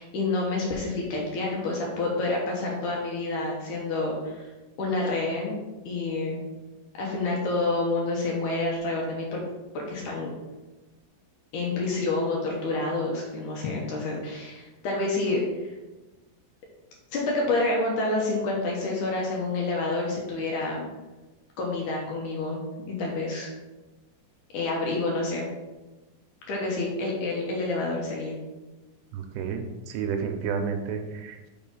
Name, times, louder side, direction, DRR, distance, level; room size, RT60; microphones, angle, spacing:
voice 1, 0.0-4.5 4.8-5.6 5.9-6.4 7.0-9.4 9.7-10.3 11.5-15.7 17.1-20.8 21.6-23.5 24.5-25.5 26.5-28.4, left 2 dB, 70° left, -2 dB, 1.9 m, -28 dB
voice 2, 29.1-31.5, right 6 dB, 85° right, 6 dB, 2.7 m, -31 dB
6.0 x 4.8 x 5.3 m, 1.1 s
omnidirectional pair, 5.0 m